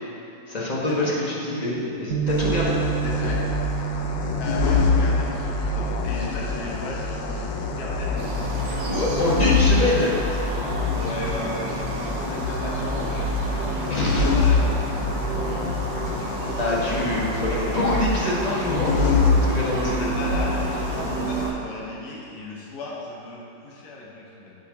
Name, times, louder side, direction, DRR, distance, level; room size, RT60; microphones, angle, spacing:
voice 1, 0.5-2.8 8.7-10.1 13.9-14.2 16.6-20.1, left 1 dB, 25° left, -5 dB, 1.3 m, -25 dB
Bass guitar, 2.1-8.4, right 11 dB, 60° right, 1.0 m, -31 dB
sound 1, 2.3-21.5, left 3 dB, 85° left, 1.4 m, -25 dB
voice 2, 3.0-3.4 4.4-8.7 11.0-13.8 14.1-15.3 17.3-17.4 19.7-24.6, left 2 dB, 60° left, -4 dB, 1.4 m, -36 dB
sound 2, 8.2-21.5, right 4 dB, 75° right, 1.5 m, -32 dB
8.4 x 5.7 x 5.2 m, 2.8 s
omnidirectional pair, 2.0 m